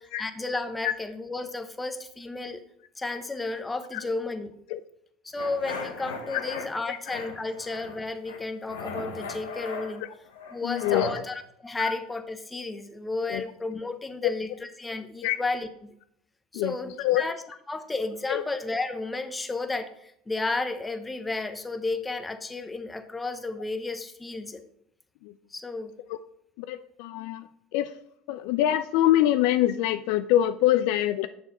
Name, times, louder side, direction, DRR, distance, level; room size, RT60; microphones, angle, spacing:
voice 1, 0.2-2.6 3.0-4.5 5.2-10.0 10.5-15.9 16.5-17.4 17.7-24.6 25.5-25.9, left 3 dB, 15° left, 9 dB, 0.9 m, -33 dB
voice 2, 3.9-4.3 4.7-4.8 6.5-7.0 7.4-7.5 10.0-10.1 10.6-11.2 11.8-12.0 13.3-13.5 14.2-14.3 15.2-15.4 16.5-17.2 18.3-18.5 25.2-25.3 26.1-26.2 26.6-27.5 27.7-27.9 28.3-31.3, left 13 dB, 65° left, 11 dB, 0.3 m, -25 dB
sound 1, 5.4-6.7 7.1-8.0 8.2-11.2, left 4 dB, 85° left, 1.1 m, -37 dB
6.7 x 6.6 x 4.1 m, 0.73 s
hypercardioid pair, 75°, 0 cm